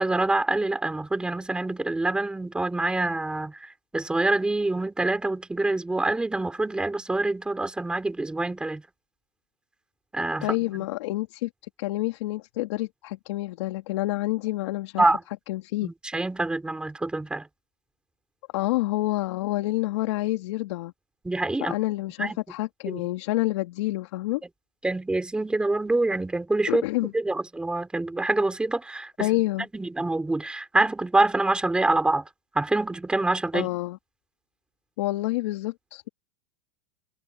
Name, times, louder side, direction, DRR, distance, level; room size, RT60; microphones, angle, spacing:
voice 1, 0.0-8.8 10.1-10.5 15.0-15.2 15.8-17.5 21.2-21.7 22.2-22.4 22.9-23.1 24.8-29.3 29.7-32.3 32.6-33.7, right 2 dB, 5° right, 3.7 m, -26 dB
voice 2, 10.4-11.5 11.8-15.0 15.5-15.9 18.5-20.9 21.6-24.4 26.7-27.1 29.2-29.7 33.5-34.0 35.0-36.1, left 18 dB, 65° left, 3.2 m, -28 dB
supercardioid pair, 150°, 16 cm